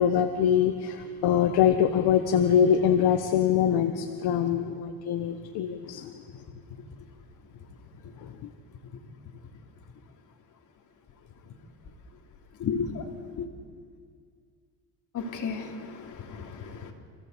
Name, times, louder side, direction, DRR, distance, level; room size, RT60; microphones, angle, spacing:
voice 1, 0.0-6.1 8.2-8.3, left 9 dB, 65° left, 6 dB, 1.4 m, -24 dB
voice 2, 12.6-13.0 13.4-13.5 15.1-16.9, left 6 dB, 45° left, 2 dB, 3.2 m, -33 dB
28.5 x 16.0 x 8.2 m, 2.1 s
cardioid pair, 125°, 41 cm